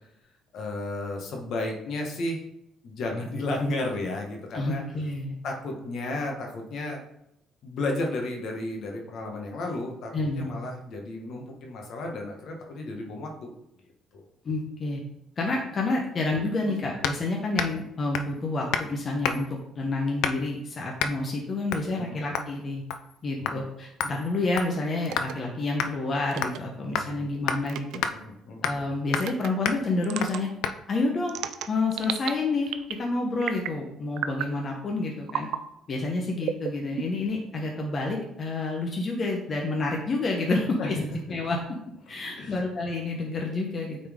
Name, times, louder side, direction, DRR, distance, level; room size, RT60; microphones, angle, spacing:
voice 1, 0.5-2.4 2.8-4.8 5.4-7.0 7.6-13.5 14.1-14.2 16.7-16.8 22.0-22.2 23.4-23.6 26.8-27.1 28.1-28.7 40.8-41.0 42.4-42.6, left 2 dB, 60° left, 1 dB, 1.5 m, -33 dB
voice 2, 4.5-5.3 10.1-10.5 14.4-15.0 15.4-22.8 23.2-28.0 28.6-30.5 30.9-31.4 31.7-32.7 33.0-35.5 35.9-41.0 41.3-41.6 42.1-44.0, left 2 dB, 35° left, 0 dB, 1.1 m, -29 dB
sound 1, 17.0-17.2 17.6-17.8 18.1-18.4 18.7-18.9 19.2-19.6 20.2-20.5 21.0-21.2 21.7-21.9 22.3-22.5 22.9-23.2 23.5-23.6 24.0-25.3 25.8-25.9 26.4-26.6 27.0-27.1 27.5-27.6 28.0-28.1 28.6-28.9 29.1-29.3 29.7-29.8 30.2-30.3 30.6-30.8, left 7 dB, 80° left, 0.5 m, -30 dB
sound 2, 25.0-25.3 26.3-26.6 27.7-28.0 29.2-29.5 30.0-30.4 31.3-32.3 32.7-33.0 33.4-33.8 34.2-34.5 35.3-35.6 36.4-37.3, right 10 dB, 75° right, 0.5 m, -33 dB
8.8 x 4.3 x 3.7 m, 0.81 s
cardioid pair, 125°, 0 cm